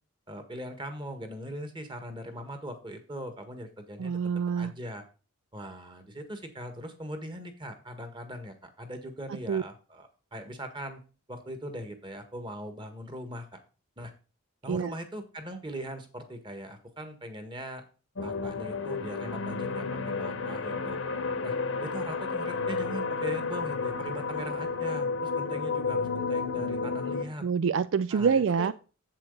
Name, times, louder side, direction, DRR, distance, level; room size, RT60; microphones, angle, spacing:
voice 1, 0.3-4.2 4.5-5.0 5.5-11.0 11.3-13.6 14.0-14.1 14.6-17.8 18.2-21.0 21.4-27.4 28.1-28.7, equal, 25° right, 7 dB, 1.5 m, -40 dB
voice 2, 4.0-4.7 9.5-9.6 14.7-14.9 27.4-28.7, right 6 dB, 60° right, 15 dB, 0.3 m, -26 dB
sound 1, 18.2-27.2, left 4 dB, 65° left, 1.0 m, -31 dB
7.8 x 7.4 x 3.8 m, 0.35 s
head